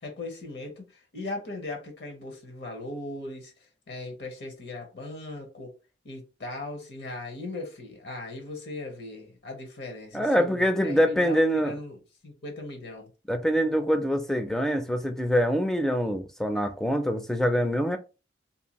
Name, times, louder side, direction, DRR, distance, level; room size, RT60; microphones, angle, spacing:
voice 1, 0.0-3.5 3.9-5.7 6.0-12.0 12.2-13.1, left 2 dB, 65° left, 0.8 m, -38 dB
voice 2, 10.1-11.7 13.3-18.0, equal, 5° left, 0.4 m, -24 dB
2.6 x 2.2 x 2.9 m
head